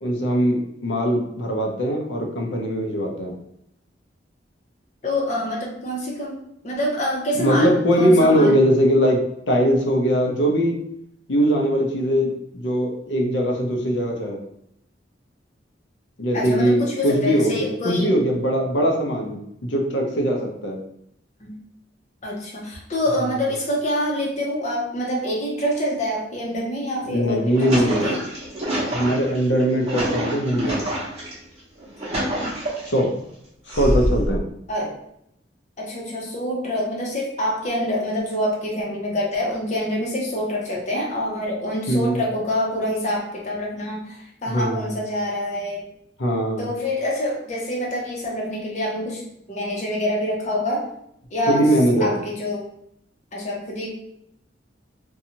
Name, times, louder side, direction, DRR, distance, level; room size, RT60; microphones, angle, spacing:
voice 1, 0.0-3.4 7.3-9.2 9.5-10.8 11.3-14.4 16.2-20.8 23.2-23.4 27.0-28.1 28.9-30.8 32.8-33.1 33.8-34.4 41.9-42.2 44.5-44.9 46.2-46.7 51.5-52.2, equal, 85° left, 1 dB, 0.6 m, -21 dB
voice 2, 5.0-6.4 6.6-7.7 8.0-8.6 16.3-18.1 21.4-21.5 22.2-28.2 34.7-34.9 35.8-45.8 46.6-49.2 49.5-50.8 51.3-51.7 52.0-52.6 53.3-53.9, left 1 dB, 40° left, -3 dB, 0.8 m, -26 dB
sound 1, 27.2-31.3 31.8-33.0 33.7-34.4, equal, 35° right, 0.9 m, -26 dB
2.6 x 2.3 x 2.8 m, 0.75 s
head